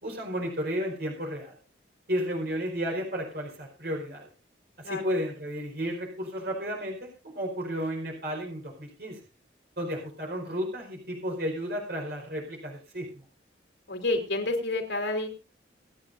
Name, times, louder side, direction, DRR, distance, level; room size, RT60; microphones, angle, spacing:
voice 1, 0.0-1.6 2.1-4.3 4.8-9.2 9.8-13.1, equal, 60° right, 1 dB, 4.8 m, -33 dB
voice 2, 13.9-15.3, left 2 dB, 80° left, 3 dB, 3.7 m, -29 dB
26.5 x 9.0 x 2.6 m, 0.32 s
head